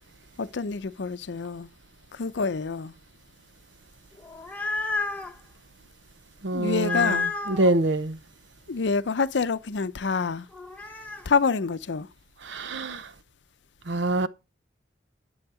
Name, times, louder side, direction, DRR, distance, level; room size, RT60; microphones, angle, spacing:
voice 1, 0.4-1.7 2.1-2.9 6.5-7.3 8.7-10.5 11.3-12.1, left 4 dB, 70° left, 0.6 m, -27 dB
sound 1, 4.2-5.3 6.8-7.7 10.5-11.3, left 4 dB, 10° left, 1.0 m, -30 dB
voice 2, 6.4-8.2 12.4-13.1 13.9-14.3, right 2 dB, 75° right, 0.7 m, -26 dB
10.5 x 7.2 x 4.8 m
head